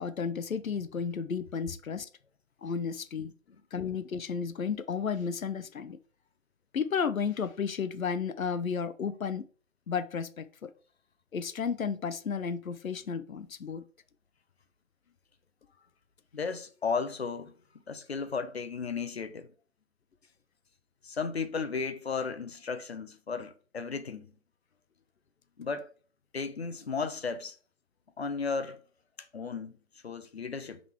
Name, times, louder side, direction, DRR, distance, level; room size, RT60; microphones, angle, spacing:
voice 1, 0.0-2.1 2.6-3.3 3.7-6.0 6.7-9.5 9.9-10.7 11.3-13.8, left 6 dB, 90° left, 0.7 m, -33 dB
voice 2, 16.3-17.6 17.9-19.5 21.0-24.3 25.6-25.9 26.3-27.6 28.2-28.8 29.2-29.8 30.0-30.8, left 5 dB, 50° left, 0.9 m, -34 dB
6.2 x 3.7 x 4.6 m
figure-of-eight pair, 160°, 40 cm